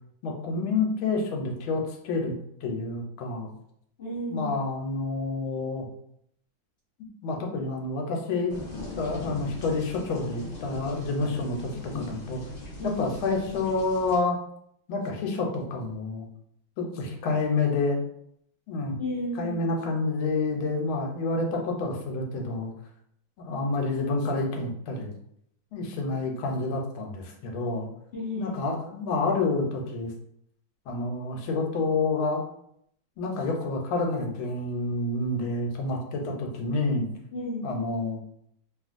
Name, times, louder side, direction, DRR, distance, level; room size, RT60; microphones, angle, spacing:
voice 1, 0.2-2.3 2.6-3.5 4.3-5.9 7.2-8.6 9.0-12.4 12.8-14.4 14.9-16.3 16.8-18.0 18.7-19.0 19.4-22.7 23.4-25.1 25.7-27.9 28.3-30.1 30.9-32.4 33.2-37.1 37.6-38.2, left 3 dB, 85° left, 2 dB, 1.4 m, -28 dB
voice 2, 4.0-4.5 12.8-13.0 19.0-19.6 28.1-28.5 37.3-37.7, left 1 dB, 35° left, -10 dB, 1.3 m, -32 dB
sound 1, 8.5-14.2, left 1 dB, 55° left, 0.4 m, -40 dB
3.2 x 2.4 x 2.4 m, 0.70 s
omnidirectional pair, 2.2 m